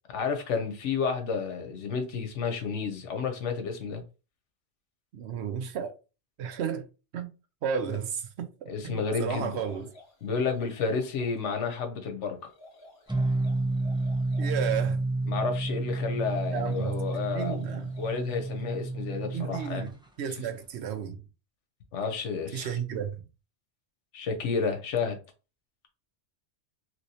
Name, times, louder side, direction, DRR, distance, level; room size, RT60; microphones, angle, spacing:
voice 1, 0.1-4.0 8.7-9.5 10.2-12.5 15.3-17.6 18.0-19.9 21.9-22.8 24.1-25.2, left 5 dB, 85° left, 1.1 m, -31 dB
voice 2, 5.1-5.9 6.4-6.9 7.1-7.3 7.6-9.9 14.4-15.0 16.5-17.0 17.3-17.9 19.3-19.9 20.2-21.2 22.5-23.2, right 8 dB, 70° right, 0.9 m, -33 dB
sound 1, 8.9-11.4 12.4-14.9 16.0-18.6, left 1 dB, 60° left, 1.6 m, -52 dB
sound 2, 13.1-19.9, right 2 dB, 10° right, 0.3 m, -30 dB
3.1 x 3.1 x 2.7 m
omnidirectional pair, 1.2 m